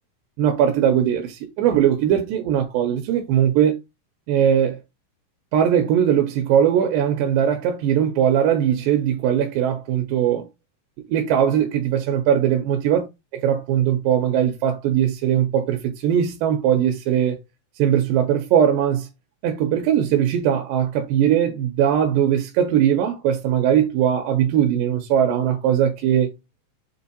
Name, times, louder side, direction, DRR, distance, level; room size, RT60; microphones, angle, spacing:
voice 1, 0.4-3.8 4.3-4.8 5.5-10.5 11.1-13.0 13.4-17.4 17.8-19.1 19.4-26.3, right 9 dB, 90° right, 2.4 m, -20 dB
6.9 x 2.6 x 2.7 m
omnidirectional pair, 4.1 m